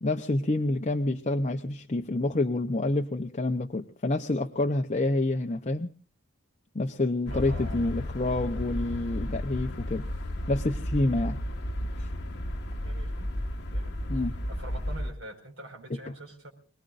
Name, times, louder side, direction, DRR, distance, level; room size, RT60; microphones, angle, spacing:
voice 1, 0.0-5.9 6.7-10.0 10.5-11.4 12.0-12.1 14.1-14.4, left 2 dB, 35° left, 5 dB, 0.7 m, -28 dB
sound 1, 7.3-15.1, left 1 dB, 50° left, 1.5 m, -33 dB
voice 2, 7.3-7.9 12.8-13.3 13.7-14.1 14.5-16.5, right 1 dB, 60° right, 0 dB, 5.2 m, -45 dB
27.5 x 19.5 x 2.6 m, 0.40 s
head